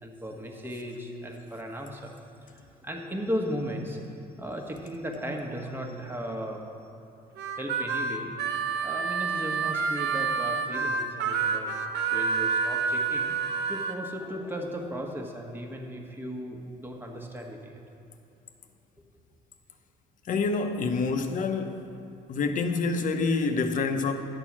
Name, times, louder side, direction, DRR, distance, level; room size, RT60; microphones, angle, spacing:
voice 1, 0.0-2.1 2.4-6.6 7.1-7.2 7.6-8.3 8.8-11.8 12.1-13.3 13.7-17.8, equal, 10° right, 1 dB, 1.3 m, -36 dB
Harmonica, 7.4-13.9, right 5 dB, 80° right, 0.7 m, -28 dB
voice 2, 20.3-21.8 22.3-24.1, left 4 dB, 50° left, 6 dB, 0.9 m, -27 dB
11.0 x 4.6 x 7.3 m, 2.9 s
cardioid pair, 110°, 17 cm